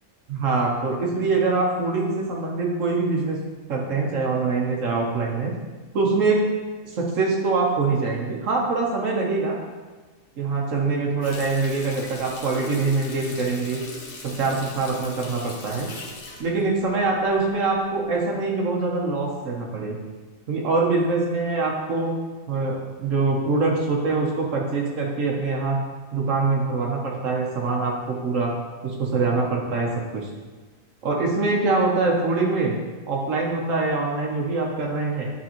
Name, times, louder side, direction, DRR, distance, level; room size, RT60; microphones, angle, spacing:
voice 1, 0.3-3.4 3.7-5.6 5.9-6.5 6.8-9.6 10.4-13.8 14.2-15.9 16.4-20.0 20.5-22.2 22.5-25.8 26.1-28.5 28.8-30.3 31.0-32.7 33.1-35.3, right 3 dB, 75° right, -1 dB, 1.2 m, -24 dB
Water tap faucet, 11.2-17.6 18.0-18.2, left 2 dB, 50° left, 1.0 m, -39 dB
8.6 x 4.1 x 2.9 m, 1.3 s
omnidirectional pair, 1.4 m